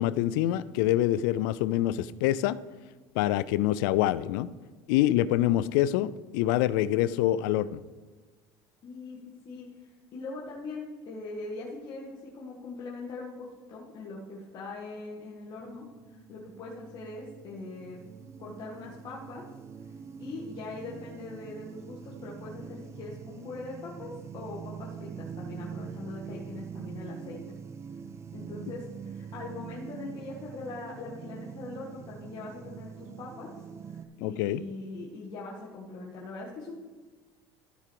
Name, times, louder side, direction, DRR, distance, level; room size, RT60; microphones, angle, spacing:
voice 1, 0.0-2.6 3.2-4.5 4.9-7.8 34.2-34.6, left 13 dB, 85° left, 17 dB, 0.4 m, -26 dB
voice 2, 8.8-9.2 9.4-18.0 18.4-19.4 19.8-19.9 20.2-27.4 28.3-36.8, left 3 dB, 40° left, -4 dB, 1.8 m, -41 dB
sound 1, 15.5-34.0, right 7 dB, 25° right, 0.6 m, -44 dB
13.5 x 5.0 x 4.6 m, 1.3 s
cardioid pair, 125°, 11 cm